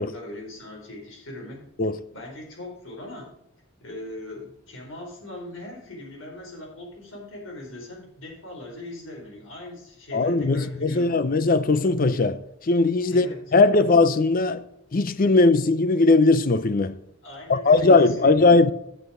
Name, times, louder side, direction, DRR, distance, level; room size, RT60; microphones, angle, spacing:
voice 1, 0.0-1.7 2.1-3.3 3.8-11.2 13.1-13.5 17.2-18.4, left 1 dB, 75° left, 4.5 m, -40 dB
voice 2, 10.1-12.4 12.7-14.6 14.9-17.0 17.5-18.7, left 3 dB, 45° left, 0.5 m, -19 dB
9.7 x 7.9 x 4.9 m
head